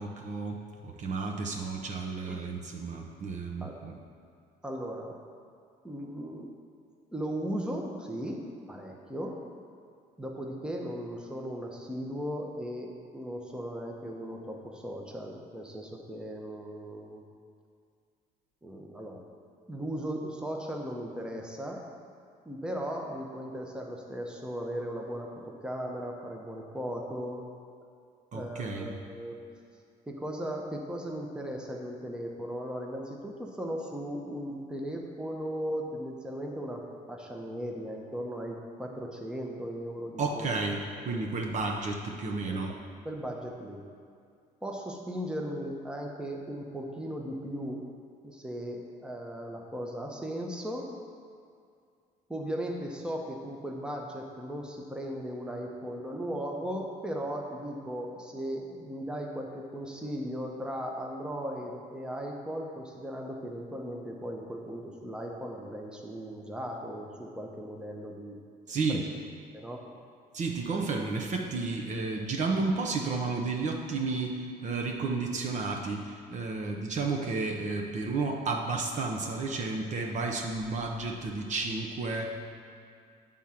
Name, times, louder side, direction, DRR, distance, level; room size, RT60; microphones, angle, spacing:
voice 1, 0.0-3.9 28.3-28.9 40.2-42.8 68.7-69.0 70.3-82.3, right 3 dB, 45° right, 2 dB, 0.8 m, -32 dB
voice 2, 4.6-5.2 5.8-6.5 7.1-9.4 10.2-17.2 18.6-19.2 19.7-21.8 22.5-27.4 28.3-29.4 30.1-36.8 37.1-40.5 41.1-41.3 42.5-42.6 43.0-43.8 44.6-47.8 48.2-50.9 52.3-68.4 68.9-69.0 69.5-69.8, equal, 5° right, 0 dB, 0.8 m, -37 dB
8.1 x 3.7 x 5.8 m, 2.3 s
cardioid pair, 110°, 17 cm